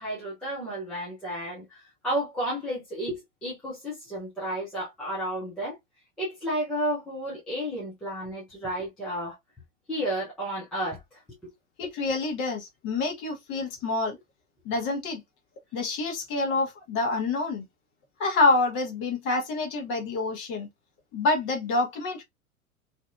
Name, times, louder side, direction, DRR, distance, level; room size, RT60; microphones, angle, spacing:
voice 1, 0.0-5.8 6.2-9.4 9.9-11.0, right 1 dB, ahead, 0.3 m, -32 dB
voice 2, 11.8-14.2 14.6-15.2 15.7-17.6 18.2-20.7 21.1-22.2, left 3 dB, 30° left, 0.9 m, -27 dB
2.6 x 2.6 x 2.2 m
figure-of-eight pair, 95°, 42 cm